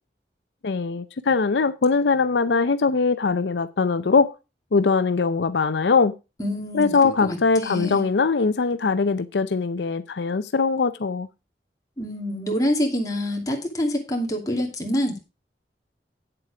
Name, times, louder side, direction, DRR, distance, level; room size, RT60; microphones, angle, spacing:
voice 1, 0.6-4.3 4.7-6.1 6.7-11.3, left 4 dB, 80° left, 0.6 m, -21 dB
voice 2, 6.4-8.1 12.0-15.2, equal, 20° left, 2.6 m, -26 dB
9.1 x 7.7 x 4.8 m
head